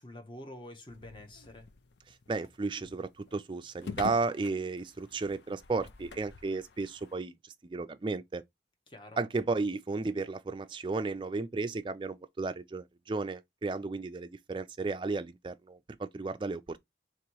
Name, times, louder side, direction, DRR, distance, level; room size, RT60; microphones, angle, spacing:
voice 1, 0.0-1.7 8.9-9.2, left 1 dB, 25° left, 0.7 m, -47 dB
sound 1, 0.9-7.2, left 4 dB, 70° left, 0.5 m, -47 dB
voice 2, 2.3-8.4 9.2-16.8, right 3 dB, 25° right, 0.3 m, -34 dB
3.0 x 2.9 x 4.5 m
head